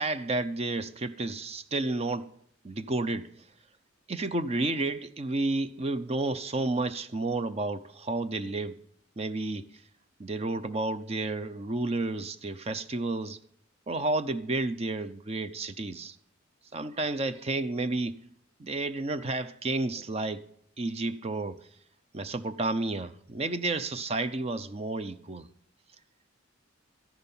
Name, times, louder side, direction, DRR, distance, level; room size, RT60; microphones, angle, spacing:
voice 1, 0.0-2.3 2.6-3.3 4.1-8.8 9.2-9.7 10.2-13.4 13.9-16.2 16.7-18.2 18.6-20.5 20.8-21.6 22.1-25.5, right 2 dB, 30° right, 0.6 m, -31 dB
13.0 x 11.0 x 5.5 m
head